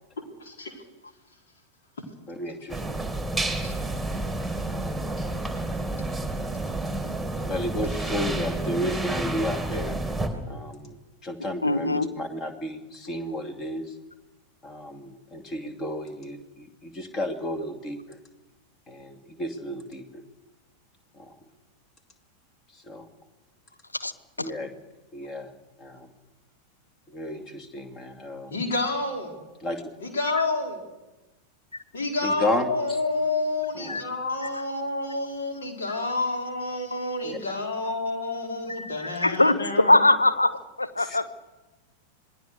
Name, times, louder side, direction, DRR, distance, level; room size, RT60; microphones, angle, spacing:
voice 1, 0.4-0.8 3.3-3.7 28.5-29.4 30.0-30.8 31.9-40.1, left 2 dB, 65° left, 2 dB, 4.6 m, -29 dB
voice 2, 2.3-3.0 4.7-4.9 7.4-10.0 10.5-13.9 14.6-18.2 18.9-20.2 21.1-21.3 22.7-23.1 24.4-24.7 25.1-25.5 25.8-26.1 27.1-28.5 29.6-29.8 32.2-33.0 33.7-34.0 37.2-37.4 41.0-41.2, left 1 dB, 25° left, 7 dB, 2.5 m, -33 dB
sound 1, 2.7-10.3, right 2 dB, 5° left, 3.2 m, -30 dB
voice 3, 11.6-12.1 24.0-24.1 33.9-34.0 35.9-36.0 36.9-37.0 38.7-41.3, left 2 dB, 85° left, 11 dB, 1.0 m, -22 dB
26.5 x 19.5 x 6.7 m, 1.1 s
figure-of-eight pair, 90°, 0 cm